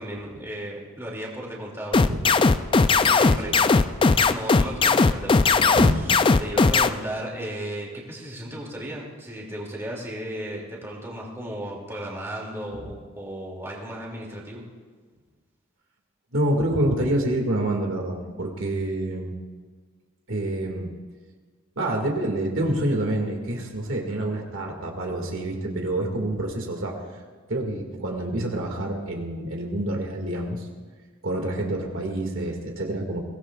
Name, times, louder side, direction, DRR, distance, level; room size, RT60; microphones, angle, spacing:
voice 1, 0.0-2.0 3.0-3.5 4.2-6.1 6.4-14.6, right 1 dB, 10° right, -2 dB, 2.6 m, -35 dB
sound 1, 1.9-6.9, left 4 dB, 25° left, 0.3 m, -18 dB
voice 2, 3.2-4.3 5.8-6.0 12.8-12.9 16.3-19.3 20.3-20.9 21.8-27.0 27.5-30.7 31.2-33.2, right 1 dB, 65° right, 1 dB, 2.1 m, -27 dB
22.5 x 17.5 x 2.4 m, 1.5 s
head